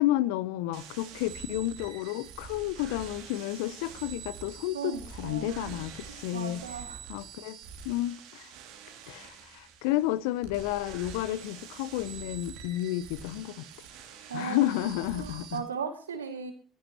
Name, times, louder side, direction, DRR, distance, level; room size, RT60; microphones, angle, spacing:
voice 1, 0.0-6.6 7.1-7.6 7.8-8.5 9.1-13.6 14.3-15.6, left 15 dB, 70° left, 0.8 m, -31 dB
sound 1, 0.7-15.6, right 7 dB, 65° right, 2.9 m, -46 dB
voice 2, 4.7-5.8 6.1-7.1 14.3-14.9 15.1-16.5, right 6 dB, 85° right, 2.2 m, -37 dB
15.5 x 15.0 x 3.0 m
figure-of-eight pair, 55°, 0 cm